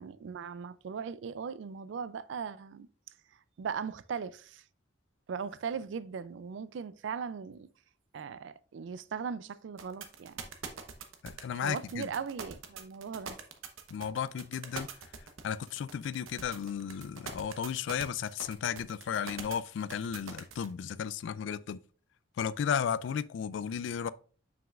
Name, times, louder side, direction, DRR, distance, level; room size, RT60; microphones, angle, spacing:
voice 1, 0.0-2.9 3.6-4.6 5.3-7.7 8.1-10.4 11.5-13.4, right 6 dB, 65° right, 0.3 m, -38 dB
sound 1, 9.8-20.7, right 6 dB, 90° right, 0.9 m, -43 dB
voice 2, 11.2-12.1 13.9-14.9 15.4-21.8 22.4-24.1, left 7 dB, 65° left, 0.3 m, -34 dB
7.1 x 6.0 x 2.4 m
head